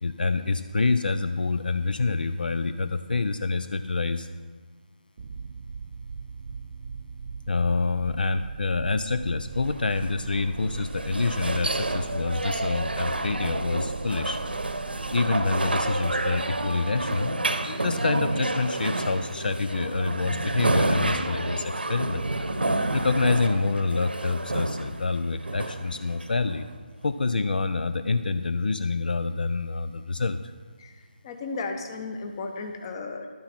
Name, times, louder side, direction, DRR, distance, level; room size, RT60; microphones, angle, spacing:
voice 1, 0.0-4.3 7.5-14.4 15.1-22.2 22.9-26.7 27.0-30.4, left 3 dB, 65° left, 10 dB, 0.5 m, -27 dB
sound 1, 5.2-18.2, right 5 dB, 40° right, 0.4 m, -39 dB
sound 2, 9.7-26.7, right 2 dB, 80° right, 0.9 m, -29 dB
voice 2, 30.8-33.3, left 3 dB, 30° left, 5 dB, 1.0 m, -35 dB
12.0 x 9.4 x 4.2 m, 1.5 s
figure-of-eight pair, 155°, 5 cm